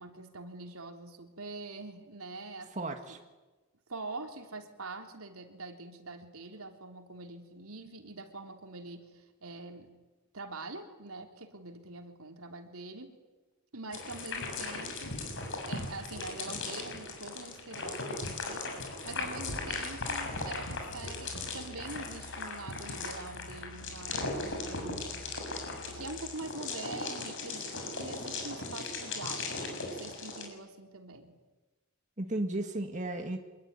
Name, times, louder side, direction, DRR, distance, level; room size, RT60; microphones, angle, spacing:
voice 1, 0.0-3.2 3.9-9.9 10.3-13.2 13.7-15.2 15.6-25.3 25.9-31.4, right 3 dB, 75° right, 4 dB, 3.6 m, -44 dB
voice 2, 2.8-3.2 32.2-33.4, right 2 dB, 35° right, 4 dB, 1.9 m, -34 dB
sound 1, 13.9-30.5, left 3 dB, 60° left, 6.9 m, -38 dB
Musical instrument, 19.3-26.4, left 1 dB, 75° left, 3.7 m, -50 dB
25.5 x 22.5 x 9.8 m, 1.2 s
head